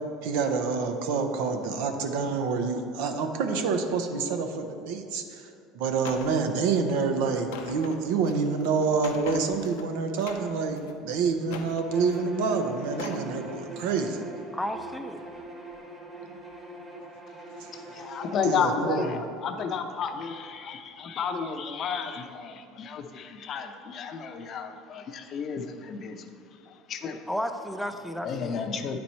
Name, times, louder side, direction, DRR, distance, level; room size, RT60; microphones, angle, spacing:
voice 1, 0.2-5.5 5.7-14.2 17.6-17.8 18.4-19.2, right 5 dB, 80° right, 6 dB, 0.6 m, -27 dB
sound 1, 6.0-6.4 6.7-7.0 7.4-9.9 10.1-10.9 11.4-12.3 12.8-13.3 13.7-13.9, left 6 dB, 85° left, 0.6 m, -42 dB
Bowed string instrument, 11.9-18.6, right 2 dB, 20° right, 1.3 m, -41 dB
voice 2, 14.5-15.3 27.3-28.6, equal, 5° left, 7 dB, 0.5 m, -33 dB
voice 3, 17.7-26.2 26.5-27.2 28.2-29.0, left 6 dB, 45° left, 6 dB, 0.6 m, -32 dB
9.2 x 4.3 x 4.3 m, 2.4 s
supercardioid pair, 100°, 0 cm